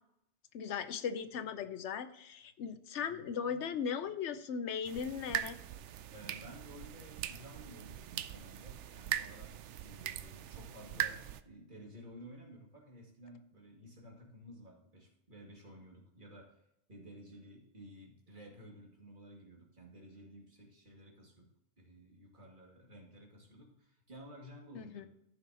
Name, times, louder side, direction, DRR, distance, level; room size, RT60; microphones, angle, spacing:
voice 1, 0.5-5.6 24.7-25.1, left 7 dB, 80° left, 11 dB, 1.0 m, -38 dB
sound 1, 4.8-11.4, right 11 dB, 80° right, 0.9 m, -41 dB
voice 2, 6.1-16.6 16.9-21.5 21.8-25.1, equal, 45° right, -2 dB, 2.4 m, -54 dB
14.5 x 6.0 x 2.9 m, 0.80 s
omnidirectional pair, 1.2 m